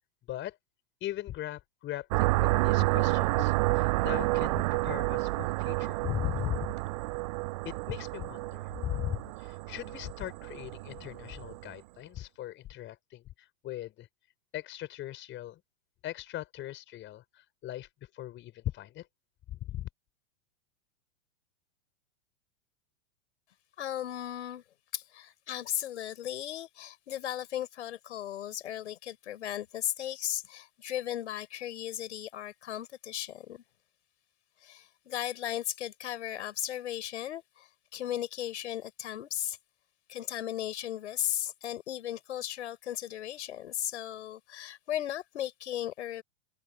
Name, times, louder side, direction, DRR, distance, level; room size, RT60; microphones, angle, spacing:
voice 1, 1.0-6.7 7.6-14.1 14.5-15.6 16.0-17.9 18.1-19.1 19.5-19.9, left 14 dB, 30° left, 5.1 m, -39 dB
sound 1, 2.1-11.7, right 22 dB, 35° right, 0.4 m, -30 dB
voice 2, 23.8-24.6 24.9-33.6 34.6-39.6 40.1-46.2, left 11 dB, 65° left, 5.4 m, -36 dB
open air
figure-of-eight pair, 105°, 37 cm